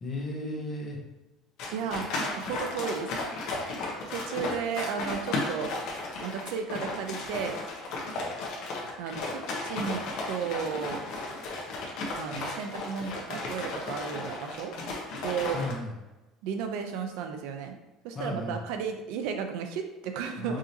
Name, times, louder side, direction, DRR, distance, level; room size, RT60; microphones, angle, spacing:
voice 1, 0.0-1.0 15.5-15.9 18.1-18.6 20.4-20.6, left 2 dB, 25° left, -1 dB, 0.8 m, -34 dB
sound 1, 1.6-15.7, left 2 dB, 55° left, 0.9 m, -35 dB
voice 2, 1.7-3.1 4.1-5.7 6.2-7.6 9.0-10.0 10.3-11.0 12.1-14.7 15.2-15.6 16.4-17.8 18.0-20.6, right 7 dB, 70° right, 5 dB, 0.5 m, -34 dB
4.8 x 2.6 x 2.8 m, 1.0 s
cardioid pair, 165°, 0 cm